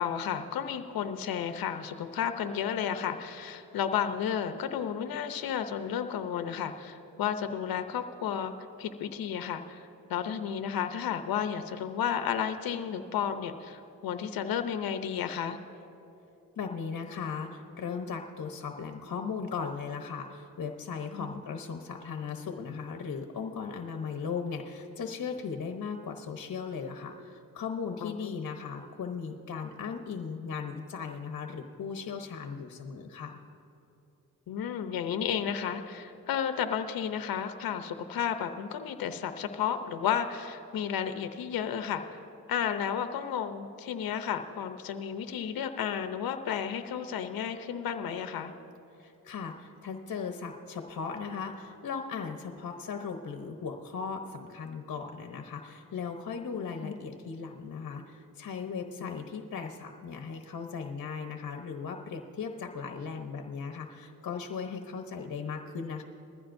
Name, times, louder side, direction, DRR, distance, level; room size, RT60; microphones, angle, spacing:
voice 1, 0.0-8.5 8.8-15.6 21.1-21.3 28.0-28.3 34.5-42.0 42.5-48.5 56.8-57.0 59.0-59.2, left 8 dB, 85° left, 9 dB, 0.7 m, -32 dB
voice 2, 16.6-33.4 49.0-66.0, left 5 dB, 60° left, 5 dB, 1.0 m, -37 dB
20.5 x 14.5 x 2.6 m, 3.0 s
cardioid pair, 60°, 35 cm